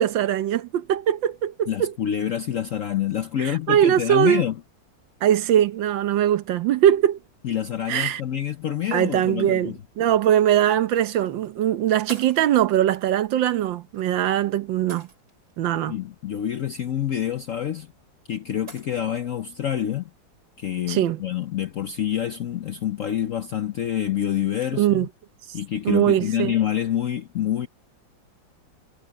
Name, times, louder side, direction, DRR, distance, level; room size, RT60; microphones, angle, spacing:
voice 1, 0.0-1.9 3.4-4.4 5.2-7.2 7.9-8.2 8.9-15.1 15.6-15.9 20.9-21.2 24.8-25.1 25.8-26.5, right 11 dB, 75° right, 1.5 m, -21 dB
voice 2, 1.7-4.6 7.4-9.8 15.7-17.9 18.3-20.1 20.6-25.1 25.5-27.7, left 10 dB, 65° left, 0.8 m, -27 dB
sound 1, 11.2-11.5 12.1-12.6 13.9-14.1 14.9-15.5 17.5-17.6 18.7-19.0, right 2 dB, 50° right, 5.4 m, -43 dB
omnidirectional pair, 2.1 m